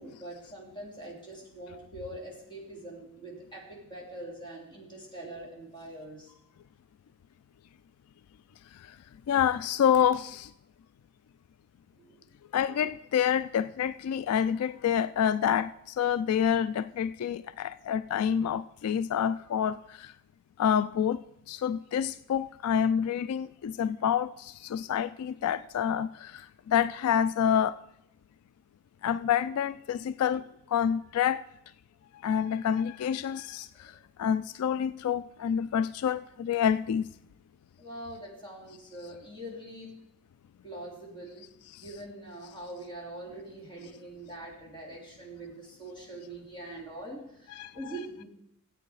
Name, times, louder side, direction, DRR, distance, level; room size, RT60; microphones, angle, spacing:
voice 1, 0.0-6.3 12.0-12.3 33.7-34.0 37.8-39.9 40.6-41.5 41.8-48.3, right 1 dB, 20° left, 3.0 m, -43 dB
voice 2, 9.3-10.5 12.5-20.1 20.6-27.8 29.0-31.4 32.2-37.0 41.7-41.8 47.5-47.8, left 8 dB, 80° left, 0.3 m, -28 dB
13.0 x 8.5 x 4.8 m
head